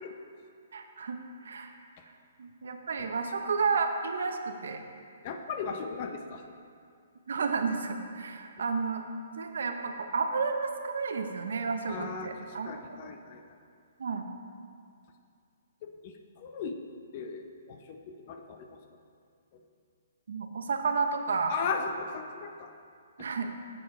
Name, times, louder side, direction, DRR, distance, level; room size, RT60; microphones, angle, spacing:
voice 1, 0.7-1.7 2.4-4.8 7.3-9.0 9.4-12.7 14.0-14.3 20.3-21.5 23.2-23.5, right 4 dB, 75° right, 6 dB, 0.8 m, -31 dB
voice 2, 5.2-6.4 11.9-13.4 15.8-16.8 17.1-18.8 19.5-19.6 21.5-22.7 23.5-23.6, left 5 dB, 35° left, 5 dB, 0.6 m, -37 dB
10.0 x 7.7 x 3.2 m, 2.3 s
hypercardioid pair, 165°, 0 cm